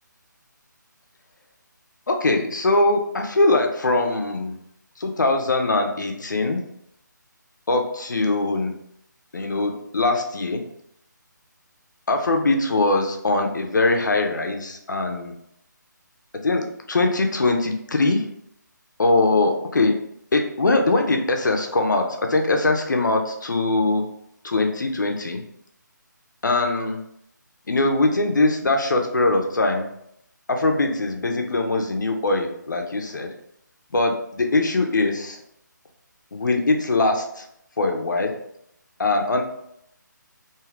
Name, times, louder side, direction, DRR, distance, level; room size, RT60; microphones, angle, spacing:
voice 1, 2.1-4.5 5.0-6.6 7.7-8.7 9.3-10.6 12.1-15.3 16.4-16.6 16.9-18.2 19.0-19.9 20.3-24.0 24.4-25.4 26.4-27.0 27.7-29.9 30.5-33.3 33.9-35.4 36.3-37.4 37.8-38.3 39.0-39.4, left 2 dB, 70° left, 3 dB, 0.6 m, -22 dB
2.7 x 2.4 x 3.1 m, 0.74 s
figure-of-eight pair, 150°, 10 cm